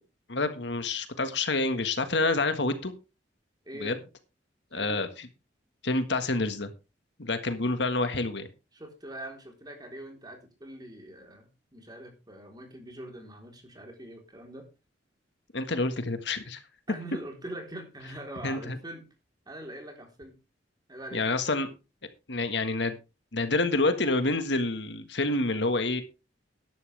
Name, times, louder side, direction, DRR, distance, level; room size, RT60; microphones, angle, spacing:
voice 1, 0.3-2.9 3.8-4.0 4.7-5.1 5.8-6.7 7.2-8.5 15.5-16.6 18.4-18.8 21.1-21.7 22.3-23.0 23.3-26.0, left 2 dB, 70° left, 9 dB, 1.6 m, -28 dB
voice 2, 3.7-4.0 4.7-5.1 8.7-14.7 16.9-19.1 19.5-20.4 20.9-21.3, right 1 dB, 25° right, 3 dB, 3.8 m, -43 dB
13.0 x 11.0 x 3.4 m, 0.29 s
head